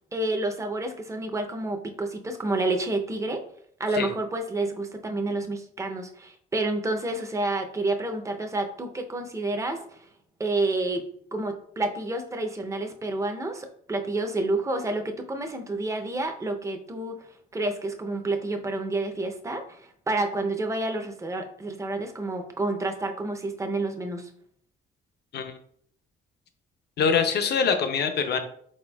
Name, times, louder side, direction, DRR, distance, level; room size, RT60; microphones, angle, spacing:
voice 1, 0.1-3.4 3.8-10.0 10.4-17.2 17.5-24.3, right 2 dB, 15° right, 5 dB, 0.6 m, -29 dB
voice 2, 27.0-28.4, left 6 dB, 55° left, 7 dB, 0.6 m, -24 dB
4.2 x 3.9 x 2.2 m, 0.63 s
cardioid pair, 90°, 20 cm